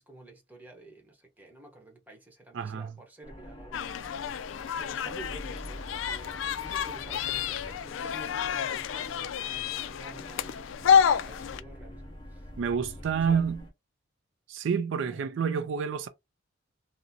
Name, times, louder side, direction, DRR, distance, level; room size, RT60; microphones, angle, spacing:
voice 1, 0.0-12.5 13.0-13.4 15.1-15.2, right 2 dB, 10° right, 0.9 m, -50 dB
voice 2, 2.5-2.9 12.6-13.6 14.5-16.1, right 6 dB, 70° right, 0.4 m, -28 dB
sound 1, 3.2-13.7, equal, 25° left, 0.8 m, -46 dB
sound 2, 3.7-11.6, left 8 dB, 75° left, 0.3 m, -29 dB
3.7 x 2.1 x 2.7 m
head